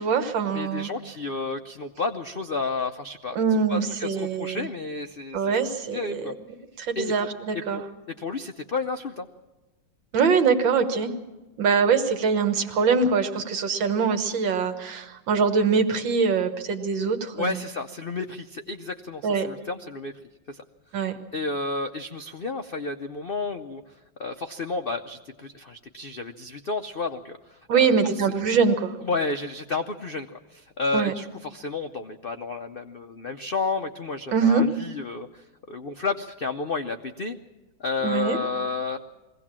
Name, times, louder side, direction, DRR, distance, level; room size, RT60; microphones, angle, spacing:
voice 1, 0.0-0.9 3.4-4.7 5.3-6.2 6.8-7.8 10.1-11.1 11.6-17.6 19.2-19.5 20.9-21.1 27.7-28.9 30.9-31.1 34.3-34.6 38.0-38.4, right 5 dB, 80° right, 8 dB, 2.1 m, -23 dB
voice 2, 0.5-3.4 3.7-5.5 5.9-6.3 6.9-7.3 7.5-9.3 17.3-20.1 20.5-20.6 20.9-21.0 21.3-28.1 29.0-37.4 37.8-39.0, left 3 dB, 85° left, 7 dB, 0.5 m, -31 dB
21.5 x 17.0 x 7.4 m, 1.1 s
omnidirectional pair, 2.0 m